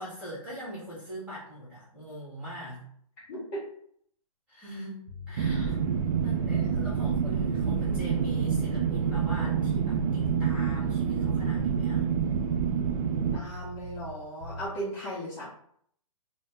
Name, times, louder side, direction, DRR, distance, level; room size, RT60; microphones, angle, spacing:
voice 1, 0.0-2.8 4.5-5.0 5.3-5.8 6.2-12.1, equal, 5° right, -8 dB, 1.3 m, -42 dB
voice 2, 3.3-3.6 6.5-6.6 13.3-15.5, right 1 dB, 25° left, -7 dB, 0.6 m, -36 dB
sound 1, 5.1-5.7 6.2-9.3 9.6-10.5 11.0-14.1 14.4-14.7, left 2 dB, 50° right, 0.8 m, -43 dB
sound 2, 5.4-13.4, right 7 dB, 75° right, 0.4 m, -27 dB
2.6 x 2.1 x 3.4 m, 0.65 s
hypercardioid pair, 150°, 19 cm